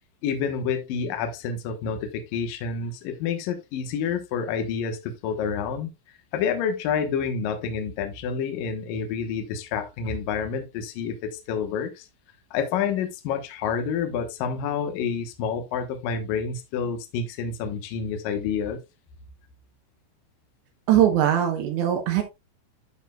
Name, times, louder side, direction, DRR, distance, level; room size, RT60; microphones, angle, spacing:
voice 1, 0.2-5.9 6.3-12.1 12.5-18.8, left 6 dB, 70° left, 2.2 m, -28 dB
voice 2, 20.9-22.2, right 11 dB, 75° right, 3.1 m, -21 dB
12.0 x 6.1 x 2.3 m
omnidirectional pair, 5.3 m